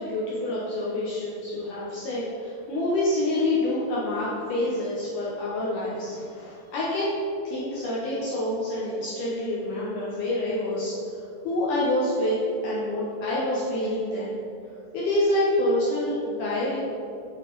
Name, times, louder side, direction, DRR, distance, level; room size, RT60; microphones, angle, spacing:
voice 1, 0.0-7.2 7.4-10.9 11.4-14.3 14.9-16.8, left 1 dB, 75° left, -7 dB, 1.9 m, -27 dB
8.3 x 4.0 x 3.8 m, 2.7 s
omnidirectional pair, 4.6 m